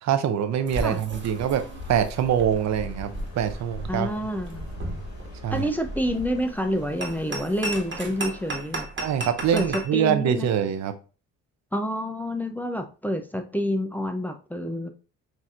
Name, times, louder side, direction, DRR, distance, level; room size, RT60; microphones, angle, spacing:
voice 1, 0.0-4.1 5.4-5.7 9.0-10.9, right 9 dB, 60° right, 9 dB, 0.6 m, -24 dB
sound 1, 0.7-9.9, right 1 dB, 40° right, 1.4 m, -35 dB
sound 2, 1.2-8.6, left 2 dB, 55° left, 1.9 m, -44 dB
voice 2, 3.9-4.7 5.5-8.9 9.5-9.6 9.9-10.5 11.7-14.9, equal, 5° left, 5 dB, 0.5 m, -28 dB
6.1 x 2.7 x 2.5 m, 0.34 s
cardioid pair, 90°, 30 cm